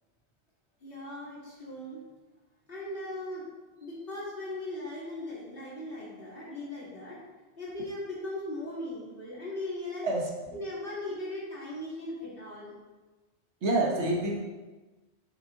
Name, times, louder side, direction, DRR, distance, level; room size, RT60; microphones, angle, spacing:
voice 1, 0.8-2.0 2.7-3.4 3.8-7.2 7.6-10.1 10.5-12.7, left 1 dB, 55° left, -7 dB, 2.5 m, -38 dB
voice 2, 13.6-14.3, right 2 dB, 90° right, -1 dB, 1.5 m, -27 dB
6.0 x 5.8 x 3.8 m, 1.2 s
omnidirectional pair, 1.1 m